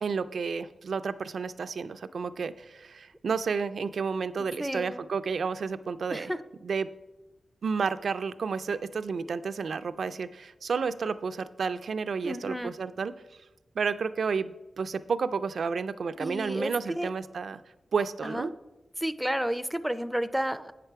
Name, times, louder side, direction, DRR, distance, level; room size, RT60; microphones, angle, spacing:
voice 1, 0.0-6.3 6.6-6.9 7.6-13.1 13.8-17.6 17.9-18.5, right 5 dB, 75° right, 13 dB, 0.4 m, -31 dB
voice 2, 4.6-5.1 6.1-6.4 12.2-12.7 16.2-17.1 18.2-18.5 19.0-20.7, equal, 5° right, 12 dB, 0.4 m, -31 dB
8.0 x 6.7 x 4.6 m, 1.0 s
wide cardioid pair, 100°, 0 cm